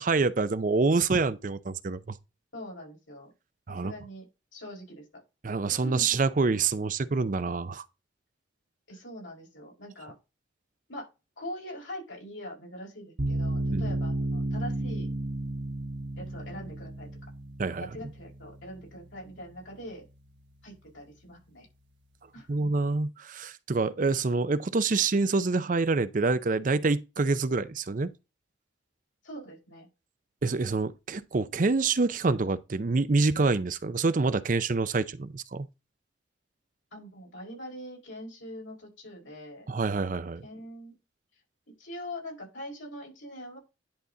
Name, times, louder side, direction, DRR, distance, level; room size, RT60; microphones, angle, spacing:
voice 1, 0.0-2.2 3.7-3.9 5.4-7.8 13.7-13.9 17.6-17.9 22.5-28.1 30.4-35.7 39.7-40.4, right 3 dB, 45° right, 0.5 m, -26 dB
voice 2, 2.5-3.3 3.7-4.2 4.5-5.2 5.8-6.1 8.9-10.1 10.9-11.1 11.4-15.1 16.2-17.1 17.8-20.0 20.6-21.7 22.3-22.7 29.2-29.9 36.9-39.7 40.4-40.9 41.8-43.6, equal, 85° left, 4.9 m, -43 dB
sound 1, 13.2-20.3, right 1 dB, 70° right, 1.3 m, -33 dB
10.5 x 4.1 x 3.8 m
head